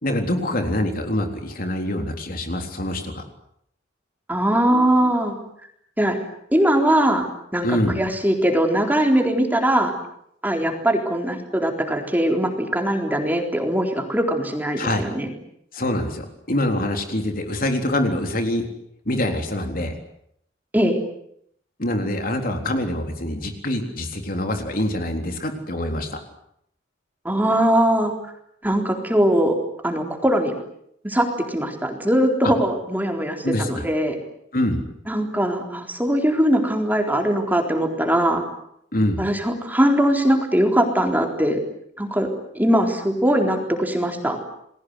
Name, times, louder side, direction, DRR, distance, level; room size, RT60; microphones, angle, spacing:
voice 1, 0.0-3.3 7.6-7.9 14.8-15.0 15.7-18.7 19.1-19.9 21.8-26.2 33.4-33.8 34.5-34.9 38.9-39.2, left 1 dB, 50° left, 4 dB, 3.8 m, -25 dB
voice 2, 4.3-5.3 6.0-6.2 6.5-7.3 7.5-7.7 8.0-9.9 10.4-15.3 20.7-21.0 27.2-28.1 28.6-29.6 29.8-30.5 31.0-34.2 35.1-38.4 39.2-41.6 42.0-42.3 42.5-44.4, right 1 dB, 10° right, 3 dB, 4.0 m, -21 dB
30.0 x 21.5 x 8.2 m, 0.72 s
head